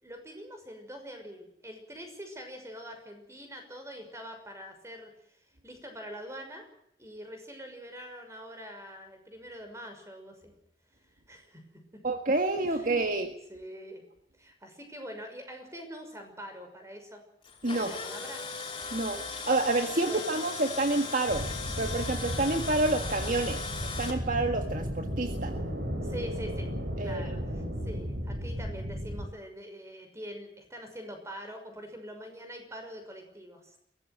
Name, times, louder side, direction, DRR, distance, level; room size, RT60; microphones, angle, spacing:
voice 1, 0.0-5.1 5.6-6.7 7.0-10.3 11.3-11.6 12.7-13.0 13.5-14.0 14.4-17.2 17.7-18.5 20.0-20.4 26.0-26.7 27.0-33.8, equal, 15° right, 5 dB, 6.1 m, -44 dB
voice 2, 12.0-13.3 17.6-17.9 18.9-21.5 21.8-23.7 24.0-25.6 27.0-27.3, right 2 dB, 50° right, 6 dB, 1.7 m, -28 dB
Tools, 17.4-24.2, left 4 dB, 30° left, 5.3 m, -38 dB
sound 1, 21.3-29.3, equal, 70° right, 5.3 m, -35 dB
23.0 x 17.5 x 8.1 m, 0.74 s
head